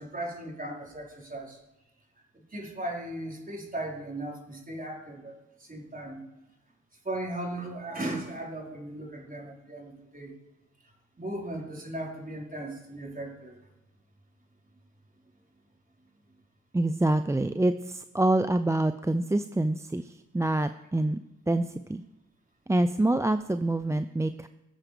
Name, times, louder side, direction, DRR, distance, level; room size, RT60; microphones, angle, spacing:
voice 1, 0.0-1.6 2.3-6.2 7.0-10.3 10.8-13.6, right 1 dB, 25° right, -2 dB, 4.8 m, -37 dB
voice 2, 16.7-21.2 21.5-22.0 22.7-24.5, right 2 dB, 10° right, 10 dB, 0.5 m, -26 dB
20.5 x 7.3 x 5.1 m, 0.98 s
supercardioid pair, 55°, 32 cm